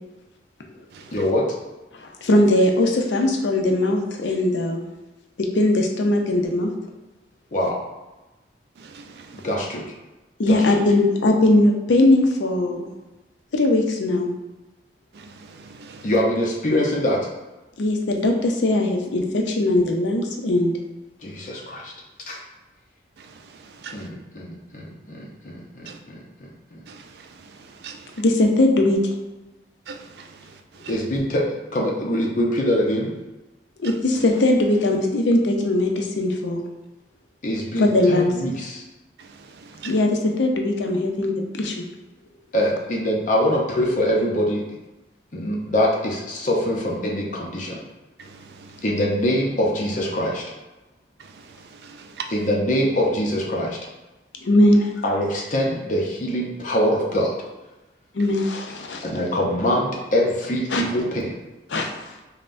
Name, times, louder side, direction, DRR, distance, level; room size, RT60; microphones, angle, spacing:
voice 1, 1.1-1.4 7.5-7.8 9.3-9.8 10.4-10.8 16.0-17.2 21.2-21.9 22.3-22.4 23.9-26.5 30.9-33.1 37.4-38.8 42.5-44.6 45.3-47.8 48.8-50.4 52.3-53.8 55.0-57.3 59.0-61.3, equal, 45° left, 0.6 m, -23 dB
voice 2, 2.0-4.8 5.4-6.7 10.4-12.9 13.5-14.3 17.8-20.7 28.2-29.1 33.8-36.6 37.8-38.3 39.8-41.8 54.5-54.8 58.1-59.0 60.7-60.8 61.7-61.9, left 1 dB, 85° left, 0.6 m, -20 dB
voice 3, 8.8-9.5 15.1-16.1 23.2-24.1 25.9-26.0 26.9-28.2 29.9-30.9 33.8-33.9 39.2-40.0 48.2-48.8 51.2-52.3, right 5 dB, 60° right, 0.3 m, -42 dB
5.4 x 2.2 x 2.5 m
head